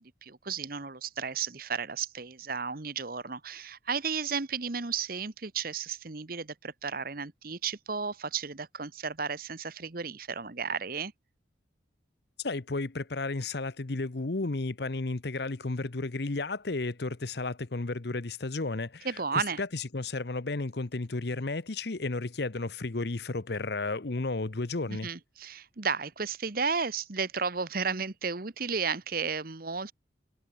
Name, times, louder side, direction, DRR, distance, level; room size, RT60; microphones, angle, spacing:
voice 1, 0.0-11.1 19.0-19.6 24.9-29.9, right 5 dB, 50° right, 1.1 m, -33 dB
voice 2, 12.4-25.1, left 3 dB, 55° left, 0.9 m, -33 dB
head